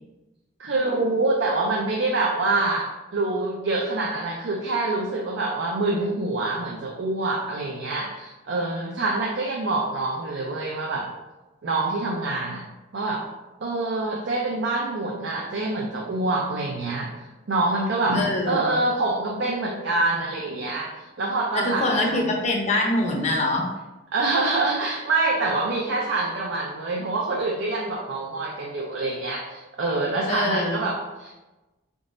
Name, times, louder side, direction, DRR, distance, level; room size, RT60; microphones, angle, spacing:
voice 1, 0.6-11.1 11.6-12.6 12.9-13.2 13.6-22.4 24.1-31.4, right 2 dB, 60° right, -1 dB, 0.5 m, -26 dB
voice 2, 18.1-18.8 21.5-23.7 30.3-30.8, left 1 dB, 35° left, 0 dB, 0.7 m, -24 dB
3.8 x 3.6 x 2.5 m, 1.1 s
head